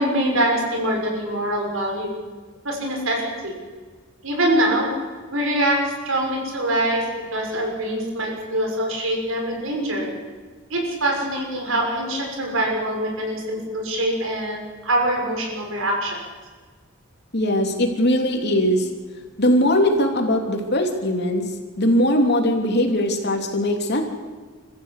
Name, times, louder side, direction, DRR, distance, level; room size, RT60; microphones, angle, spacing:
voice 1, 0.0-2.1 2.6-3.5 4.2-4.9 5.3-10.1 10.7-16.2, right 1 dB, 80° right, 0 dB, 6.7 m, -24 dB
voice 2, 17.3-18.9 19.4-21.4 21.8-24.0, left 1 dB, 55° left, 3 dB, 3.2 m, -20 dB
28.5 x 15.0 x 8.5 m, 1.5 s
head